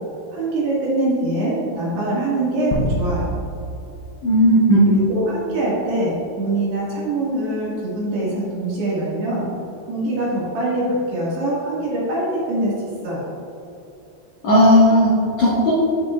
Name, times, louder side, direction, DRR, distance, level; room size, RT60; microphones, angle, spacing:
voice 1, 0.3-3.4 4.9-9.5 9.9-13.4, right 1 dB, 60° right, -7 dB, 3.6 m, -23 dB
sound 1, 2.7-5.3, equal, 90° left, 3.8 m, -27 dB
voice 2, 4.2-5.0 14.4-15.7, equal, 60° left, -10 dB, 1.9 m, -14 dB
15.0 x 6.0 x 2.5 m, 2.9 s
omnidirectional pair, 6.0 m